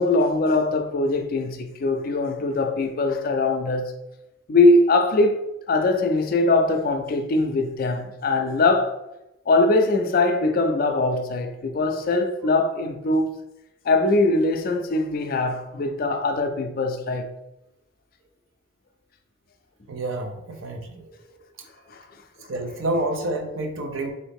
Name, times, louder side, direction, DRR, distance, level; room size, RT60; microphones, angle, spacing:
voice 1, 0.0-3.9 4.5-5.4 5.7-8.9 9.5-13.3 13.9-17.3 21.9-22.0, left 2 dB, 45° left, 0.4 m, -21 dB
voice 2, 19.9-21.1 22.5-24.1, right 2 dB, 80° right, 0.6 m, -28 dB
3.9 x 2.6 x 3.4 m
head